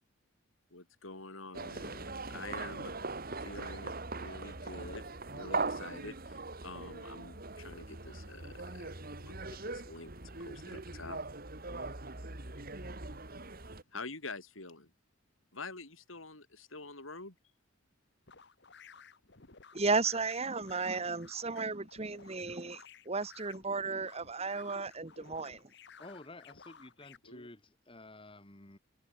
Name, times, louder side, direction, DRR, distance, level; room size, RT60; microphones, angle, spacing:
voice 1, 0.7-2.9 3.4-5.1 5.3-11.2 13.9-14.9 15.5-17.3 27.2-27.5, left 3 dB, 85° left, 6.5 m, -47 dB
sound 1, 1.5-13.8, right 3 dB, 45° right, 2.9 m, -41 dB
sound 2, 18.3-27.2, left 5 dB, 60° left, 2.2 m, -56 dB
voice 2, 19.7-25.6, right 4 dB, 30° right, 1.4 m, -34 dB
voice 3, 26.0-28.8, left 2 dB, 25° left, 2.2 m, -51 dB
head